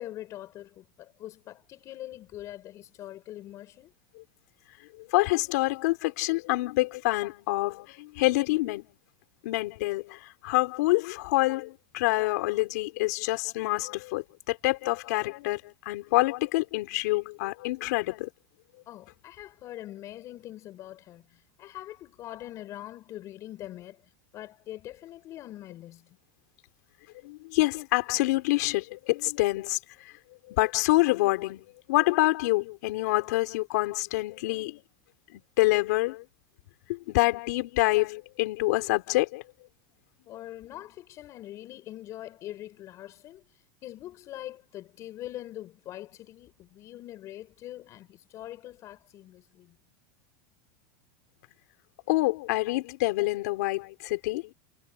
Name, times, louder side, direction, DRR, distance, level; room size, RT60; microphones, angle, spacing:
voice 1, 0.0-3.9 18.9-24.0 24.3-26.2 40.3-43.5 43.8-49.8, left 14 dB, 30° left, 7.7 m, -43 dB
voice 2, 5.0-8.9 9.4-18.3 27.2-30.1 30.5-34.8 35.3-36.2 36.9-39.4 52.1-54.5, left 21 dB, 65° left, 4.9 m, -27 dB
supercardioid pair, 165°, 10 cm